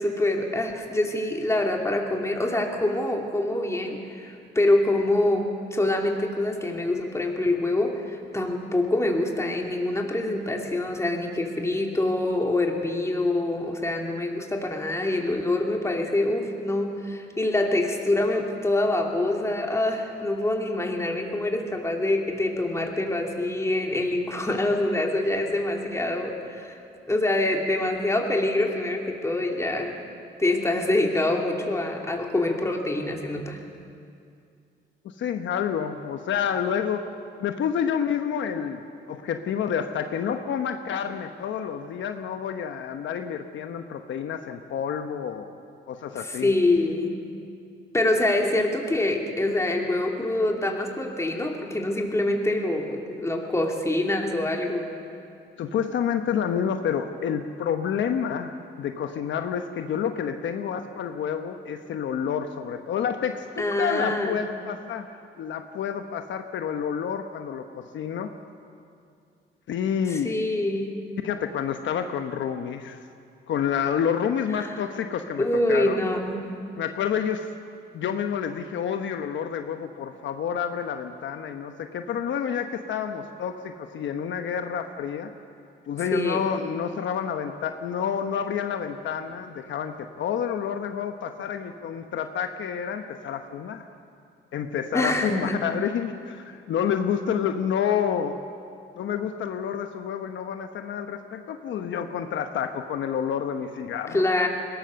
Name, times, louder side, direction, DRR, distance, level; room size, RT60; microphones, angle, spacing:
voice 1, 0.0-26.8 27.1-30.0 30.4-33.6 46.2-47.1 47.9-54.9 63.6-64.4 70.1-70.9 74.6-74.8 75.4-76.4 86.1-86.5 94.9-95.6 104.1-104.5, left 2 dB, 15° left, 1 dB, 2.9 m, -25 dB
voice 2, 35.0-37.0 37.4-38.8 39.1-45.6 45.9-46.5 55.6-65.1 65.4-68.3 69.7-70.3 71.2-73.0 73.5-76.1 76.8-77.5 77.9-85.3 85.9-93.8 94.5-98.4 99.0-104.2, left 8 dB, 70° left, 6 dB, 1.0 m, -29 dB
21.5 x 18.0 x 6.9 m, 2.4 s
cardioid pair, 90°, 20 cm